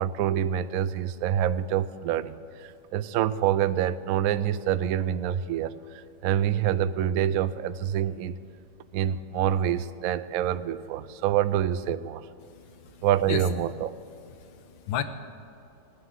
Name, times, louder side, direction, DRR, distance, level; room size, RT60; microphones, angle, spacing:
voice 1, 0.0-8.4 8.9-12.2 13.0-13.9, right 10 dB, 75° right, 13 dB, 0.8 m, -26 dB
voice 2, 12.5-13.5 14.4-15.0, left 10 dB, 85° left, 10 dB, 1.5 m, -34 dB
17.5 x 9.7 x 7.5 m, 2.7 s
omnidirectional pair, 2.1 m